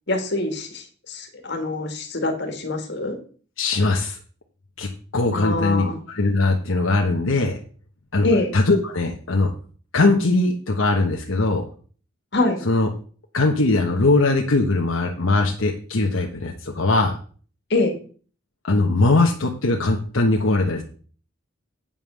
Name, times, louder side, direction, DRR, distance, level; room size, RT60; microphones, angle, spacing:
voice 1, 0.1-3.2 5.3-6.0 8.2-8.5 12.3-12.6 17.7-17.9, left 2 dB, 55° left, 4 dB, 1.9 m, -24 dB
voice 2, 3.6-4.2 4.8-4.9 5.1-7.6 8.1-8.2 8.5-9.5 9.9-11.7 12.7-12.9 13.3-17.2 18.7-20.8, left 2 dB, 80° left, 1 dB, 1.1 m, -20 dB
8.8 x 5.5 x 6.3 m, 0.42 s
head